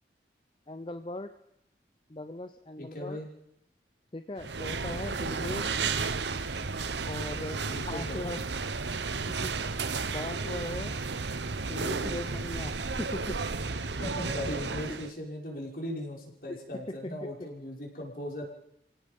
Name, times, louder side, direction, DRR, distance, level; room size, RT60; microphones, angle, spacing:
voice 1, 0.7-1.3 2.1-3.2 4.1-5.9 7.1-7.6 7.9-8.4 9.4-9.5 10.1-11.0 11.7-13.3 14.9-15.0 16.5-16.6 17.4-17.5, left 1 dB, 30° left, 9 dB, 0.7 m, -39 dB
voice 2, 2.8-3.3 7.6-8.3 14.0-18.4, left 1 dB, 55° left, -1 dB, 5.8 m, -38 dB
sound 1, 4.4-15.1, right 4 dB, 85° right, 1.1 m, -33 dB
29.0 x 17.0 x 5.5 m, 0.77 s
head